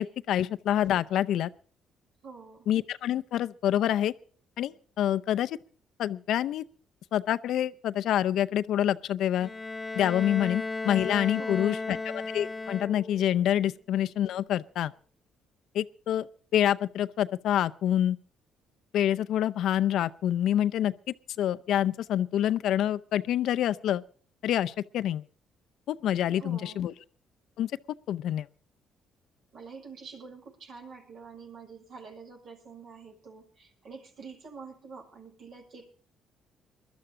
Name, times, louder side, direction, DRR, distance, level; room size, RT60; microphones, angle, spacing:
voice 1, 0.0-1.5 2.7-4.1 4.6-5.6 6.0-6.6 7.1-9.5 9.9-14.9 15.7-16.3 16.5-18.2 18.9-20.9 21.4-24.0 24.4-25.2 25.9-26.9 27.6-27.7 28.1-28.5, left 11 dB, 75° left, 0.6 m, -27 dB
voice 2, 2.2-2.7 11.4-12.0 26.3-26.9 29.5-35.9, right 5 dB, 65° right, 6.2 m, -47 dB
Bowed string instrument, 9.4-13.3, left 3 dB, 25° left, 0.8 m, -35 dB
21.5 x 12.5 x 3.8 m
supercardioid pair, 75°, 0 cm